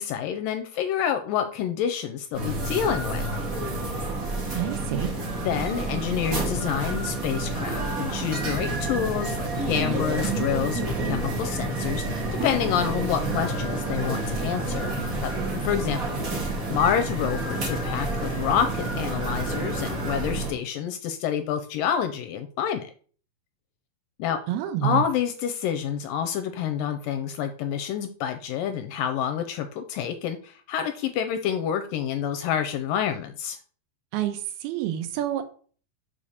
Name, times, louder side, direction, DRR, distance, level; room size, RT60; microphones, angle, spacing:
voice 1, 0.0-3.3 3.9-4.2 5.4-16.2 16.4-22.9 24.2-24.4 24.8-33.6, left 9 dB, 80° left, 8 dB, 2.1 m, -28 dB
sound 1, 2.3-20.5, right 2 dB, 35° right, 1.4 m, -29 dB
voice 2, 4.5-5.1 24.5-25.0 34.1-35.5, right 11 dB, 85° right, 8 dB, 2.8 m, -28 dB
5.7 x 5.1 x 6.4 m, 0.42 s
omnidirectional pair, 4.4 m